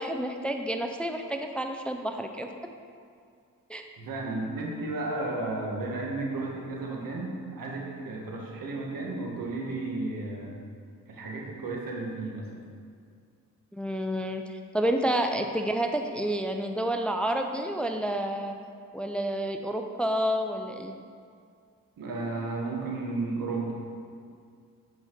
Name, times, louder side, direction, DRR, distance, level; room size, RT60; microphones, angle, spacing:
voice 1, 0.0-2.5 3.7-3.8 13.7-18.6 18.9-20.9, right 1 dB, 5° left, 5 dB, 0.5 m, -29 dB
voice 2, 4.0-10.6 11.1-12.5 22.0-23.8, right 2 dB, 70° right, -1 dB, 1.6 m, -33 dB
8.0 x 5.5 x 4.7 m, 2.2 s
cardioid pair, 65°, 35 cm